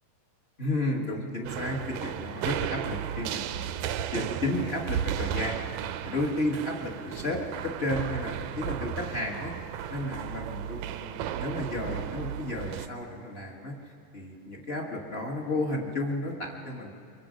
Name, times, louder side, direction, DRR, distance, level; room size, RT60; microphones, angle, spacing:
voice 1, 0.6-3.5 4.1-5.7 6.0-9.5 9.9-16.9, left 1 dB, 40° left, 0 dB, 0.8 m, -32 dB
sound 1, 1.4-12.9, right 10 dB, 80° right, 1.8 m, -34 dB
24.5 x 23.0 x 5.2 m, 2.4 s
omnidirectional pair, 3.9 m